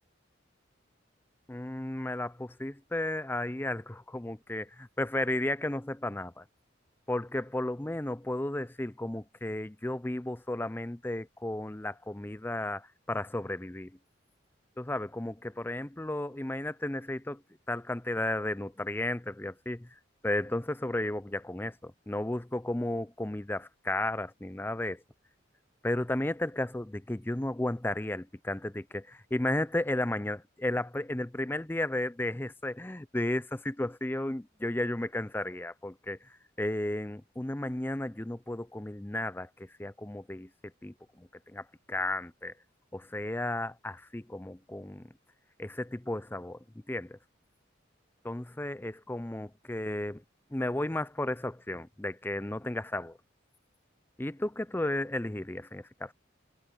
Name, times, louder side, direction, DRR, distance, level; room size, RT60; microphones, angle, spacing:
voice 1, 1.5-6.4 7.1-13.9 14.8-17.4 17.7-19.9 20.2-25.0 25.8-36.2 36.6-40.5 40.8-42.5 42.9-45.1 45.6-46.6 46.9-47.2 48.2-50.2 50.5-53.2 54.2-56.1, left 1 dB, 10° left, 0.5 m, -33 dB
head